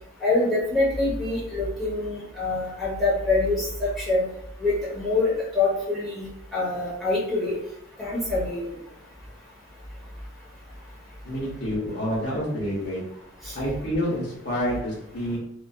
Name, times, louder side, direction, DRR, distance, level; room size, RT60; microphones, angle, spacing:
voice 1, 0.2-4.2 4.6-6.2 6.5-7.6 8.0-8.7 13.4-13.5, left 2 dB, ahead, -8 dB, 1.0 m, -25 dB
voice 2, 11.2-13.0 13.5-15.4, equal, 60° left, -6 dB, 0.9 m, -28 dB
2.5 x 2.3 x 2.3 m, 0.75 s
head